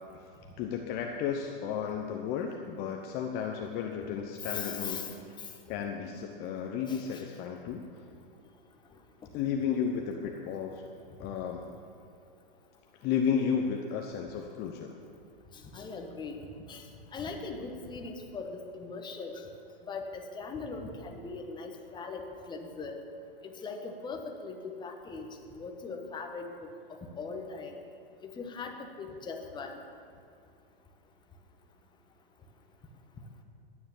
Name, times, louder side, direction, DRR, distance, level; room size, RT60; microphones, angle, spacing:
voice 1, 0.6-5.0 5.7-7.8 9.3-10.8 11.2-11.6 13.0-14.9, left 7 dB, 35° left, 3 dB, 1.0 m, -33 dB
voice 2, 4.4-5.5 6.9-7.2 15.5-16.4 16.7-16.8 17.1-19.4 19.9-23.0 23.4-25.3 25.5-26.7 27.2-27.8 28.2-29.7, left 4 dB, 15° left, 3 dB, 1.4 m, -40 dB
12.5 x 9.7 x 7.4 m, 2.4 s
hypercardioid pair, 135°, 29 cm